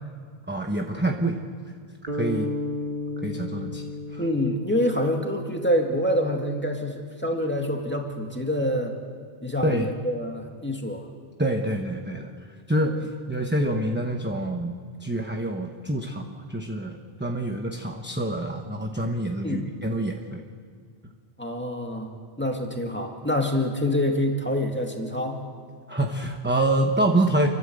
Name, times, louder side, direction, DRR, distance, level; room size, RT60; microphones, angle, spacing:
voice 1, 0.5-1.4 2.1-2.5 3.2-4.2 9.6-9.9 11.4-12.3 12.7-14.7 15.0-20.4 25.9-27.5, right 1 dB, 10° right, 3 dB, 1.0 m, -26 dB
sound 1, 2.1-6.3, left 2 dB, 50° right, 2.1 m, -34 dB
voice 2, 4.2-9.0 9.4-11.1 19.4-19.7 21.4-25.4, left 1 dB, 10° left, 2 dB, 2.1 m, -26 dB
29.5 x 12.0 x 8.0 m, 2.1 s
omnidirectional pair, 1.1 m